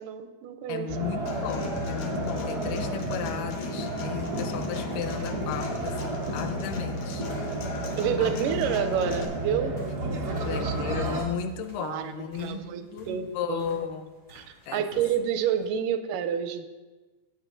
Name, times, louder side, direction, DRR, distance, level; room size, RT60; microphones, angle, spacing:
voice 1, 0.0-0.9 8.0-10.7 11.8-12.1 12.4-13.6 14.3-16.6, right 9 dB, 85° right, 9 dB, 2.2 m, -29 dB
voice 2, 0.7-7.3 8.2-8.5 10.4-14.1 14.7-14.9, left 7 dB, 85° left, 8 dB, 2.3 m, -35 dB
sound 1, 0.9-11.2, right 1 dB, 65° right, 1.0 m, -32 dB
Human voice / Acoustic guitar, 1.3-9.2, left 5 dB, 70° left, 1.6 m, -38 dB
sound 2, 3.2-15.7, equal, 40° left, 2.2 m, -51 dB
15.0 x 8.2 x 2.6 m, 1.2 s
omnidirectional pair, 3.7 m